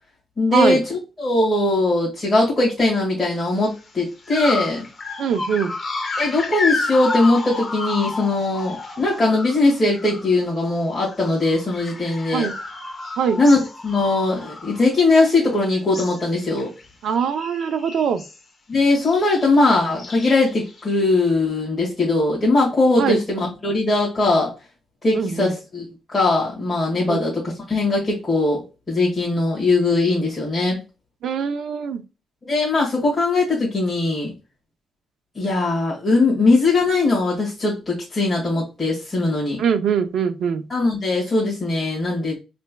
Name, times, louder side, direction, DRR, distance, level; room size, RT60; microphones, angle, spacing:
voice 1, 0.4-4.8 6.2-12.5 13.4-13.6 13.8-16.7 18.7-24.5 25.0-28.6 28.9-30.8 32.4-34.3 35.3-39.6 40.7-42.4, left 2 dB, 10° left, -7 dB, 1.6 m, -20 dB
sound 1, 3.6-3.8 4.2-10.4 10.7-15.5 15.7-16.3 16.6-16.9 17.1-18.4 19.0-19.5 20.0-21.3, left 3 dB, 30° left, 0.8 m, -31 dB
voice 2, 5.2-5.7 12.3-12.5 13.2-13.4 17.0-18.2 23.0-23.2 25.1-25.5 27.1-27.2 31.2-32.0 39.6-40.6, right 7 dB, 65° right, 9 dB, 0.5 m, -22 dB
5.2 x 3.3 x 2.2 m, 0.29 s
cardioid pair, 150°, 0 cm